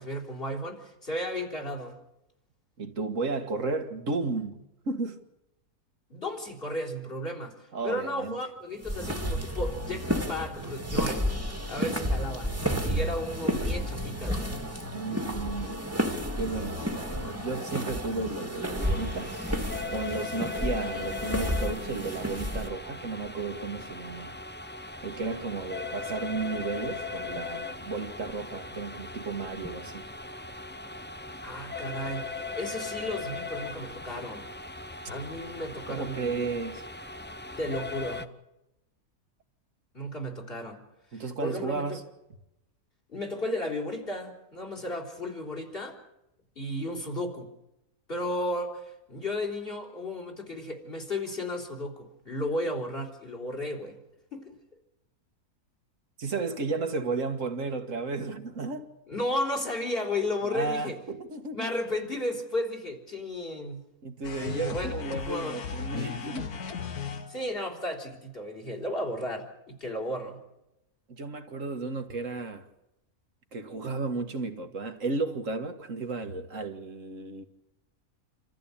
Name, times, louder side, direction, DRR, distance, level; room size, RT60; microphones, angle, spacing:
voice 1, 0.0-2.0 6.1-11.2 11.7-14.6 31.4-34.4 35.1-36.5 37.6-38.3 39.9-40.8 41.1-42.0 43.1-46.0 46.6-47.5 48.1-54.0 54.3-54.5 59.1-61.0 61.5-63.8 64.4-65.6 67.3-70.4, left 1 dB, 40° left, 4.2 m, -34 dB
voice 2, 2.8-5.2 7.7-8.4 14.9-15.8 16.4-19.3 19.9-24.3 25.0-30.1 35.9-36.8 41.1-42.0 56.2-58.9 60.4-61.7 64.0-66.5 71.1-72.7 73.5-77.4, right 3 dB, 60° right, 2.0 m, -33 dB
sound 1, 8.8-22.7, equal, 10° right, 2.1 m, -31 dB
sound 2, 18.8-38.3, left 3 dB, 10° left, 0.5 m, -39 dB
sound 3, 64.2-67.6, left 6 dB, 90° left, 1.8 m, -36 dB
27.5 x 14.5 x 8.6 m
omnidirectional pair, 1.5 m